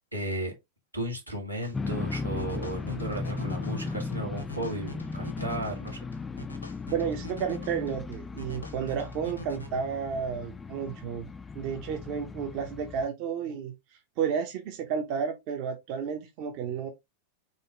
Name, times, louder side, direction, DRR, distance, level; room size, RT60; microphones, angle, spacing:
voice 1, 0.1-0.5 0.9-6.1, equal, 90° right, 1.7 m, -34 dB
sound 1, 1.6-9.7, equal, 85° left, 1.1 m, -46 dB
sound 2, 1.7-13.1, left 4 dB, 15° left, 0.3 m, -37 dB
voice 2, 6.9-11.3 11.5-13.7 14.2-16.9, right 7 dB, 45° right, 0.8 m, -32 dB
4.2 x 3.6 x 3.3 m
figure-of-eight pair, 90°, 0 cm